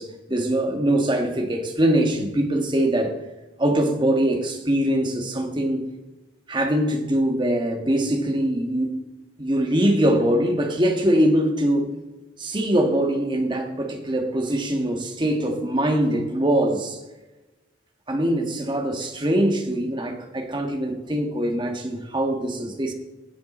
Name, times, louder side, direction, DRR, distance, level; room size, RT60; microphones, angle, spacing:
voice 1, 0.0-3.2 3.6-5.8 6.5-9.0 9.4-11.9 12.4-17.0 18.1-22.9, right 1 dB, 25° right, 4 dB, 1.5 m, -22 dB
17.5 x 7.6 x 4.3 m, 1.1 s
head